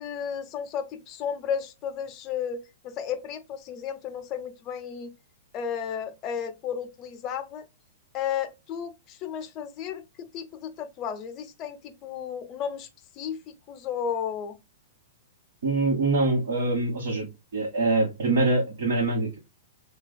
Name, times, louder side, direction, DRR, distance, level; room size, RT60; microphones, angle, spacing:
voice 1, 0.0-5.1 5.5-7.7 8.1-12.9 13.1-14.6, left 8 dB, 35° left, 0.5 m, -33 dB
voice 2, 15.6-17.3 17.5-19.4, right 2 dB, 75° right, 1.0 m, -24 dB
3.3 x 2.2 x 2.5 m
hypercardioid pair, 140°, 0 cm